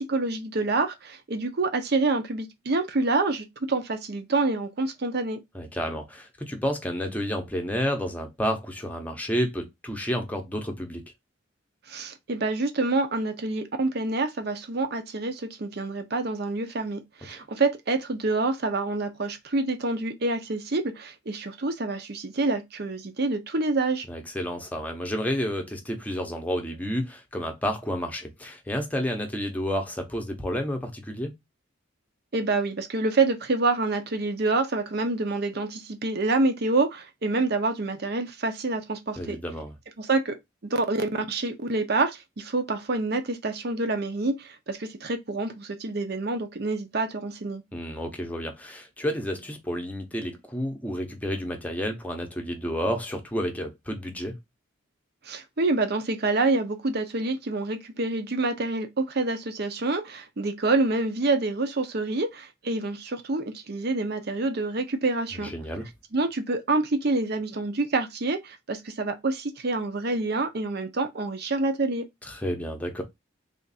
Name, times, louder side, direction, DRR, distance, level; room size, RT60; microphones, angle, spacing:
voice 1, 0.0-5.4 11.9-24.1 32.3-39.4 40.0-40.4 40.6-47.6 55.2-65.5 66.1-72.1, right 3 dB, 55° right, 0.7 m, -27 dB
voice 2, 5.5-11.0 24.1-31.3 39.2-39.7 47.7-54.4 65.3-65.9 72.2-73.0, equal, 10° left, 0.7 m, -30 dB
3.5 x 2.5 x 4.0 m
head